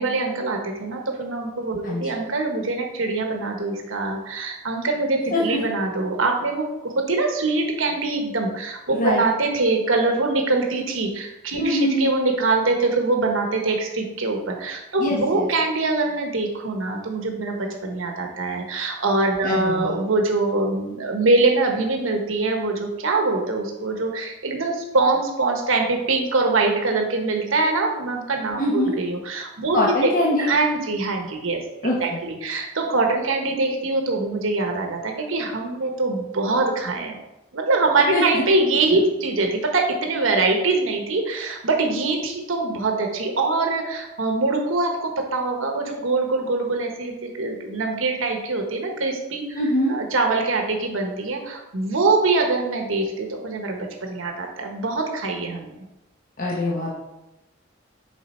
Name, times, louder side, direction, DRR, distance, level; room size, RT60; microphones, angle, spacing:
voice 1, 0.0-31.6 32.0-37.2 37.5-49.6 49.9-55.8, right 3 dB, 85° right, 2 dB, 1.1 m, -23 dB
voice 2, 11.6-12.1 15.0-15.5 19.4-20.0 28.6-28.9 29.7-30.5 31.8-31.9 38.1-38.4 38.9-39.0 49.6-50.0 56.4-56.9, left 1 dB, 45° left, -4 dB, 1.0 m, -23 dB
7.3 x 4.9 x 4.3 m, 0.96 s
head